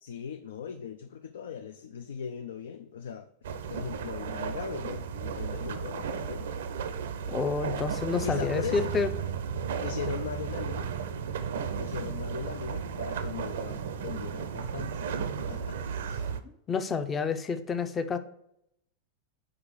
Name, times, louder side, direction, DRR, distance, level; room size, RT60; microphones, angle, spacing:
voice 1, 0.0-3.3 3.7-6.5 8.2-8.9 9.8-10.9 11.8-15.1 15.4-16.3, left 7 dB, 60° left, 8 dB, 0.4 m, -39 dB
sound 1, 3.4-16.4, right 7 dB, 60° right, 0.5 m, -34 dB
voice 2, 7.3-9.1 16.4-18.2, left 5 dB, 20° left, 10 dB, 0.6 m, -29 dB
5.0 x 5.0 x 6.3 m, 0.77 s
figure-of-eight pair, 90°, 0 cm